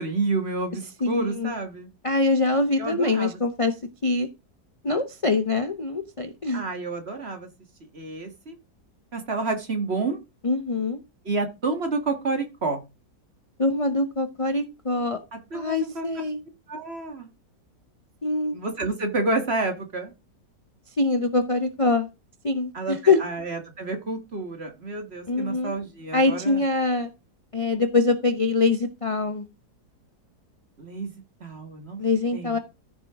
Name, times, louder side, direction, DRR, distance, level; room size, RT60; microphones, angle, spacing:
voice 1, 0.0-1.9 2.8-3.4 6.5-7.5 7.9-8.6 9.1-10.2 11.3-12.8 15.3-16.1 16.7-17.3 18.5-20.1 22.7-26.6 30.8-32.0 32.3-32.6, right 3 dB, 40° right, 6 dB, 1.9 m, -29 dB
voice 2, 1.0-1.5 2.0-3.7 4.0-4.3 4.8-6.6 10.4-11.0 13.6-15.2 15.5-16.4 18.2-18.6 21.0-22.1 22.4-23.2 25.3-25.7 26.1-27.1 27.5-29.4 32.0-32.6, left 3 dB, 35° left, 8 dB, 0.5 m, -24 dB
14.0 x 6.2 x 3.6 m, 0.27 s
omnidirectional pair, 1.8 m